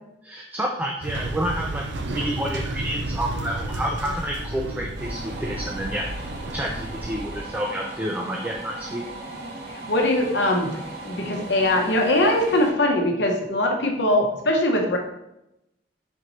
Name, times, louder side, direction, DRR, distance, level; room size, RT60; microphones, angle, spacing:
voice 1, 0.2-9.0, equal, 10° right, 0 dB, 0.4 m, -29 dB
sound 1, 1.0-7.6, right 2 dB, 90° right, 0.5 m, -32 dB
sound 2, 5.0-12.7, right 2 dB, 65° right, 0.9 m, -38 dB
voice 2, 9.7-10.8 11.0-15.0, left 1 dB, 75° left, 2 dB, 0.9 m, -21 dB
4.4 x 3.0 x 3.9 m, 0.84 s
head